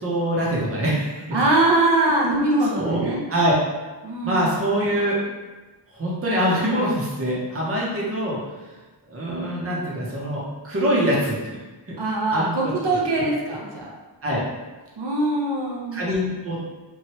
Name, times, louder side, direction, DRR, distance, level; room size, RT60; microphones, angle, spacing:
voice 1, 0.0-1.4 2.1-2.4 2.7-3.5 4.2-5.2 5.9-8.4 9.1-11.4 12.3-12.7 13.8-13.9 14.2-14.4 15.9-16.6, equal, 30° right, -5 dB, 0.7 m, -24 dB
voice 2, 1.3-3.2 4.0-4.6 12.0-13.9 15.0-16.3, right 2 dB, 70° right, -3 dB, 0.6 m, -22 dB
3.1 x 2.2 x 2.9 m, 1.2 s
wide cardioid pair, 95°, 44 cm